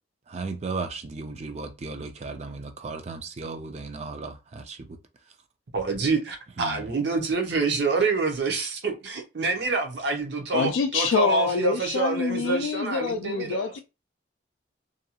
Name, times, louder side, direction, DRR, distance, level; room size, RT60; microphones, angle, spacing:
voice 1, 0.3-4.9 6.6-6.9, right 3 dB, 35° right, 0.4 m, -35 dB
voice 2, 5.7-13.7, right 4 dB, 60° right, 0.7 m, -27 dB
voice 3, 10.5-13.8, left 5 dB, 85° left, 0.3 m, -26 dB
2.6 x 2.3 x 2.8 m
head